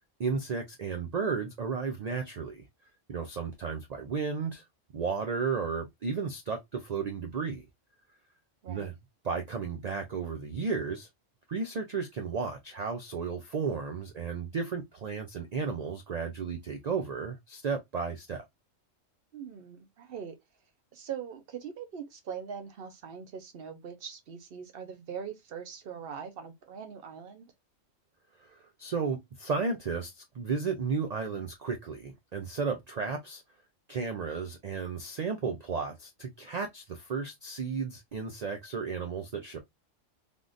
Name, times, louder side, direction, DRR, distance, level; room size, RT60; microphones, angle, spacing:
voice 1, 0.2-2.6 3.1-4.6 4.9-7.6 8.7-8.9 9.2-11.1 11.5-18.4 28.4-33.4 33.9-39.6, right 5 dB, 80° right, 0.3 m, -33 dB
voice 2, 19.3-20.4 20.9-27.5, right 7 dB, 55° right, 0.7 m, -42 dB
3.6 x 2.5 x 2.4 m
omnidirectional pair, 1.3 m